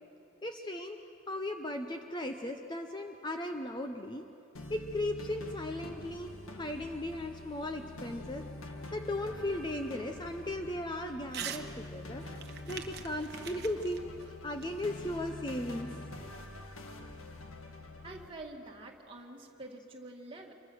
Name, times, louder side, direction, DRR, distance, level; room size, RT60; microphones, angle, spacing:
voice 1, 0.4-1.0 1.3-4.3 4.7-8.5 8.9-12.2 12.7-14.0 14.4-16.0 16.6-17.1, left 1 dB, 20° left, 5 dB, 0.8 m, -37 dB
sound 1, 4.5-18.3, left 2 dB, 85° left, 1.6 m, -46 dB
Crumpling crinkling / Tearing, 11.3-11.7 12.0-15.3, right 9 dB, 50° right, 1.1 m, -44 dB
voice 2, 18.0-20.5, right 2 dB, 25° right, 0 dB, 2.1 m, -47 dB
26.5 x 23.5 x 6.4 m, 2.7 s
head